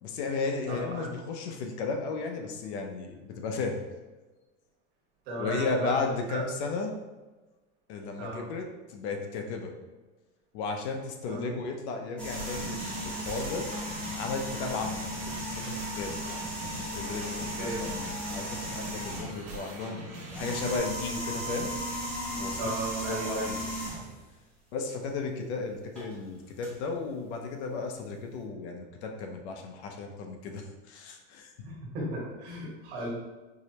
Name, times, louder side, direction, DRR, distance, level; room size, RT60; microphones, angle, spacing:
voice 1, 0.0-3.8 5.4-6.9 7.9-9.7 10.5-13.7 14.2-15.1 15.4-16.1 16.6-20.0 20.3-22.7 23.1-23.6 24.7-31.5, left 4 dB, 65° left, 3 dB, 0.6 m, -34 dB
voice 2, 0.7-1.1 5.3-6.4 8.2-8.5 11.3-11.6 17.6-17.9 22.6-23.5 31.6-33.1, right 1 dB, 60° right, -4 dB, 1.4 m, -35 dB
sound 1, 12.2-19.5 20.2-24.2 26.0-26.1 26.6-26.7, equal, 5° left, 0.4 m, -36 dB
sound 2, 12.3-20.8, right 2 dB, 45° right, 1.2 m, -42 dB
4.8 x 2.1 x 2.8 m, 1.2 s
supercardioid pair, 170°, 36 cm